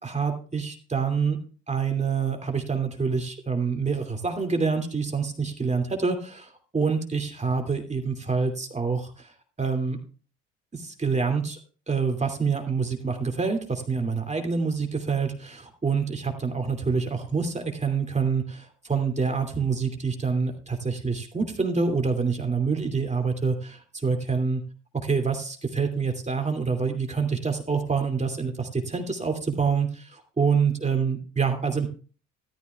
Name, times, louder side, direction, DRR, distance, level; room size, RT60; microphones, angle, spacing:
voice 1, 0.0-1.4 1.7-9.3 9.6-10.0 10.7-11.6 11.9-24.6 25.0-31.9, right 5 dB, 20° right, 5 dB, 2.6 m, -26 dB
13.5 x 13.0 x 2.4 m, 0.39 s
hypercardioid pair, 60°, 34 cm